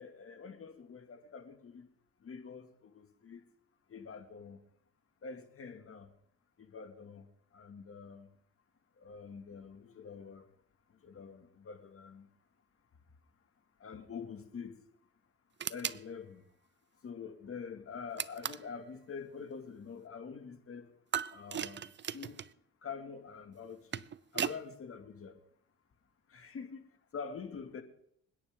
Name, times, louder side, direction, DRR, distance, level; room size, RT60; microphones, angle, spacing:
voice 1, 0.0-1.9 2.2-3.5 3.9-4.6 5.2-6.1 6.6-7.3 7.5-8.3 9.0-10.4 11.0-12.3 13.8-14.8 15.7-16.4 17.0-20.9 21.3-22.4 22.8-24.1 24.3-25.4 26.3-26.9 27.1-27.8, left 5 dB, 50° left, 2.2 m, -46 dB
sound 1, 15.6-16.0 18.2-18.7 21.1-22.5 23.6-24.6, right 9 dB, 40° right, 0.6 m, -37 dB
27.0 x 9.9 x 3.7 m
cardioid pair, 90°, 30 cm